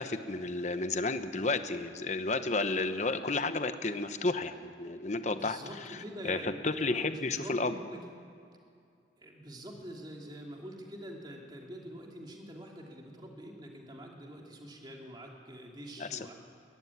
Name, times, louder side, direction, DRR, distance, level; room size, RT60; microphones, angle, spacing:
voice 1, 0.0-7.8 16.0-16.3, left 3 dB, 40° left, 9 dB, 1.0 m, -32 dB
voice 2, 5.2-8.0 9.2-16.3, equal, 25° right, 0 dB, 2.6 m, -45 dB
21.5 x 14.5 x 9.6 m, 2.4 s
head